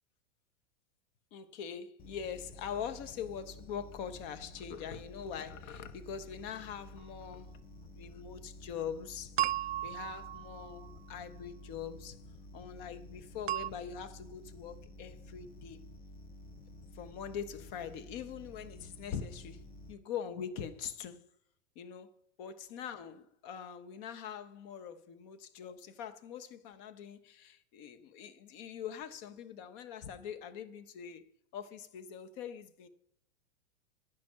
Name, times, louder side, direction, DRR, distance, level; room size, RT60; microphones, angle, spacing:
voice 1, 1.3-7.5 7.9-9.4 9.8-12.3 12.5-15.8 16.9-21.2 21.7-22.1 22.4-31.2 31.5-32.9, left 8 dB, 45° left, 1.2 m, -43 dB
sound 1, 2.0-19.9, left 1 dB, 25° left, 1.1 m, -52 dB
sound 2, 9.4-10.9 13.5-13.7, right 14 dB, 60° right, 0.5 m, -34 dB
10.5 x 9.4 x 5.7 m
hypercardioid pair, 100°, 37 cm